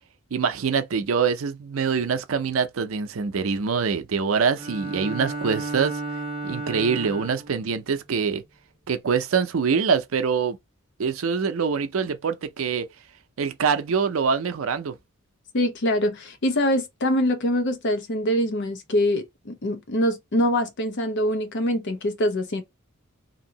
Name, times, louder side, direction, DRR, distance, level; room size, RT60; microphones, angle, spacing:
voice 1, 0.3-5.9 6.4-8.4 8.9-10.6 11.0-12.9 13.4-14.9, right 6 dB, 70° right, 0.5 m, -24 dB
Bowed string instrument, 4.5-7.6, right 2 dB, 25° right, 0.9 m, -33 dB
voice 2, 15.5-22.6, left 1 dB, 55° left, 0.7 m, -24 dB
2.8 x 2.6 x 2.8 m
head